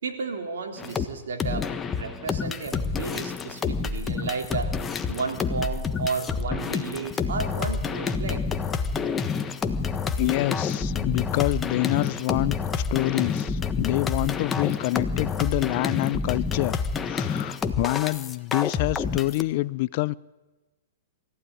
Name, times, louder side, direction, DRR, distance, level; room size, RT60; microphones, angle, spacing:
voice 1, 0.0-4.7 5.1-8.4, right 4 dB, 75° right, 3 dB, 4.0 m, -33 dB
sound 1, 0.8-1.1 1.4-19.4, left 5 dB, 15° left, 1.3 m, -28 dB
voice 2, 10.2-12.6 12.9-16.8 17.0-20.2, left 20 dB, 50° left, 20 dB, 0.6 m, -26 dB
22.0 x 15.0 x 10.0 m, 1.2 s
hypercardioid pair, 130°, 0 cm